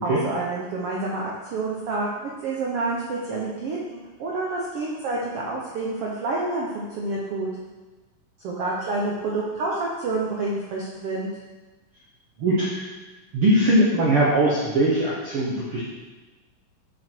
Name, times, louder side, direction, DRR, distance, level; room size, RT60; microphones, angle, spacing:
voice 1, 0.0-7.5 8.4-11.3, right 2 dB, 85° right, -4 dB, 1.3 m, -28 dB
voice 2, 12.4-12.9 13.3-15.9, right 1 dB, 60° right, -5 dB, 1.5 m, -21 dB
9.3 x 5.2 x 4.5 m, 1.2 s
omnidirectional pair, 4.1 m